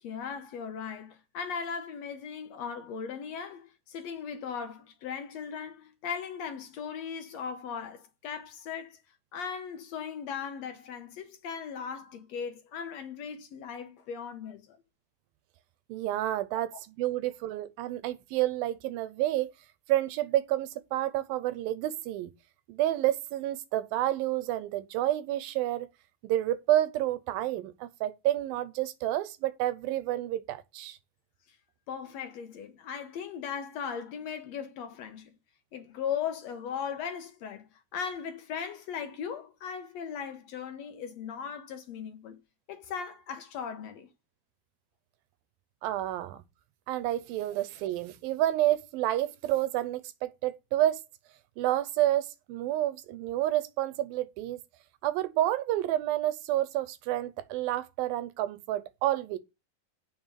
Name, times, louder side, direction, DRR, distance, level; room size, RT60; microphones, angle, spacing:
voice 1, 0.0-9.0 9.3-14.8 31.9-35.3 35.7-42.4 42.7-44.1, left 7 dB, 70° left, 1.7 m, -38 dB
voice 2, 15.9-19.5 19.9-22.3 22.7-25.9 26.2-31.0 45.8-46.4 46.9-51.0 51.6-54.6 55.0-59.4, right 14 dB, 90° right, 2.6 m, -29 dB
7.7 x 5.6 x 6.4 m
omnidirectional pair, 4.1 m